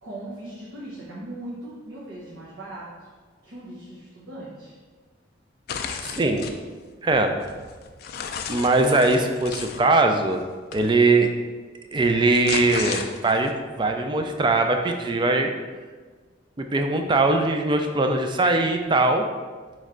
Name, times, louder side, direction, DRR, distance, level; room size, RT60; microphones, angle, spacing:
voice 1, 0.0-3.1 3.4-4.7 5.9-6.4, right 1 dB, 85° right, -7 dB, 0.8 m, -39 dB
sound 1, 5.7-6.6 7.1-9.8 10.7-10.9 12.1-13.5, left 6 dB, 55° left, 0.3 m, -33 dB
voice 2, 6.0-6.4 7.0-7.3 8.5-10.4 10.7-11.3 11.9-15.5 16.6-19.2, right 2 dB, 25° right, 5 dB, 0.3 m, -21 dB
4.3 x 3.1 x 3.7 m, 1.4 s
head